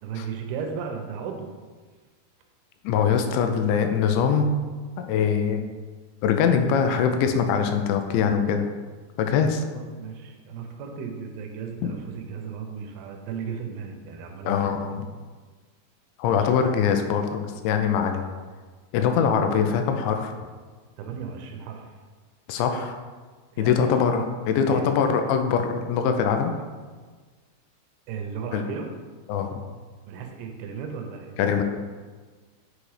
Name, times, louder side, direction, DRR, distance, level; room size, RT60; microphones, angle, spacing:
voice 1, 0.0-1.5 9.7-14.8 16.2-16.5 19.1-19.2 21.0-22.0 23.5-24.0 24.5-24.9 28.1-28.9 30.1-31.4, right 6 dB, 90° right, 3 dB, 2.2 m, -35 dB
voice 2, 2.8-4.6 5.1-5.6 6.2-8.6 9.2-9.6 14.5-15.1 16.2-18.3 18.9-20.3 22.5-23.0 23.6-26.5 28.5-28.6 29.3-29.5 31.4-31.6, left 6 dB, 80° left, 6 dB, 2.7 m, -23 dB
8.4 x 3.2 x 4.8 m, 1.4 s
omnidirectional pair, 5.4 m